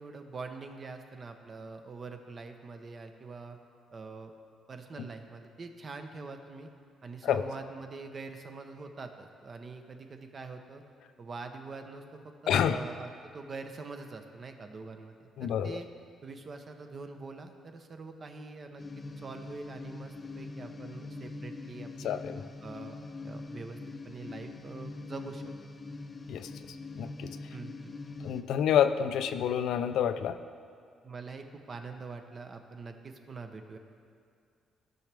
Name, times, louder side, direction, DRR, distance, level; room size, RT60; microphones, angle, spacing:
voice 1, 0.0-3.6 3.9-4.3 4.7-6.7 7.0-10.8 11.2-15.9 16.2-22.2 22.6-23.0 23.2-23.8 24.0-25.4 27.5-27.9 31.0-33.8, right 4 dB, 35° right, 6 dB, 0.8 m, -44 dB
voice 2, 12.5-12.8 15.4-15.8 22.0-22.4 26.3-26.5 26.9-27.3 28.2-30.4, left 9 dB, 75° left, 10 dB, 0.4 m, -28 dB
sound 1, 18.8-28.4, left 3 dB, 25° left, 0.5 m, -43 dB
15.5 x 6.1 x 3.4 m, 2.3 s
cardioid pair, 120°, 0 cm